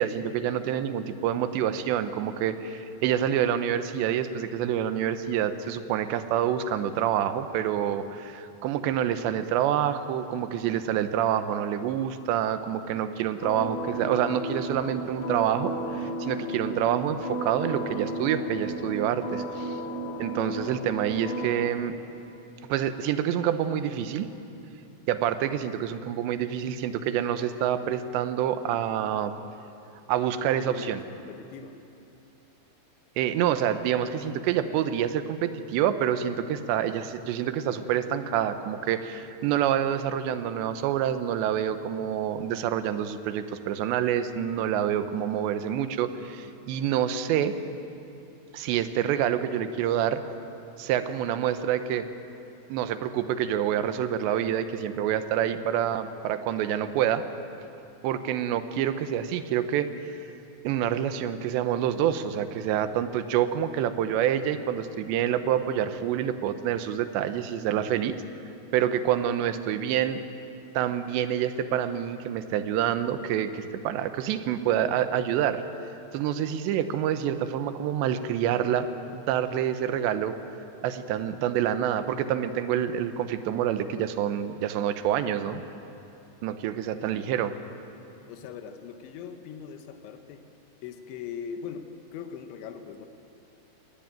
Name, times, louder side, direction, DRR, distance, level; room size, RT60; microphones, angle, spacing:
voice 1, 0.0-19.8 20.2-22.0 22.7-24.3 25.1-29.3 30.1-31.0 33.2-47.5 48.5-50.2 50.8-52.1 52.7-57.2 58.0-60.1 60.6-68.2 68.7-70.2 70.7-75.6 76.1-78.9 79.1-80.4 80.8-85.6 86.4-87.6, right 10 dB, 80° right, 10 dB, 3.1 m, -27 dB
sound 1, 13.4-21.7, right 1 dB, 55° left, 2.9 m, -34 dB
voice 2, 16.6-17.1 20.5-20.7 21.0-21.2 25.4-25.6 30.6-31.8 69.0-69.1 87.0-87.3 88.3-90.5 90.8-93.1, left 7 dB, 85° left, 7 dB, 3.5 m, -41 dB
22.5 x 18.5 x 9.2 m, 2.8 s
omnidirectional pair, 5.3 m